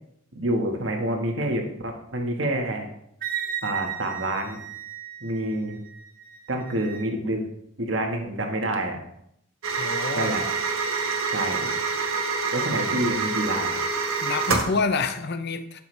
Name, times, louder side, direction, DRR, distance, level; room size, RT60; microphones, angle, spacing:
voice 1, 0.3-2.9 3.6-4.6 5.2-5.8 6.5-7.4 7.8-9.0 10.2-10.5 11.3-11.7 12.5-13.8, right 1 dB, 60° right, 3 dB, 1.6 m, -27 dB
Wind instrument woodwind instrument, 3.2-7.1, right 9 dB, 45° right, 1.3 m, -35 dB
sound 1, 9.6-14.8, right 4 dB, 85° right, 1.3 m, -26 dB
voice 2, 9.8-10.3 14.2-15.8, left 4 dB, 50° left, 9 dB, 0.7 m, -27 dB
12.0 x 7.1 x 3.4 m, 0.71 s
head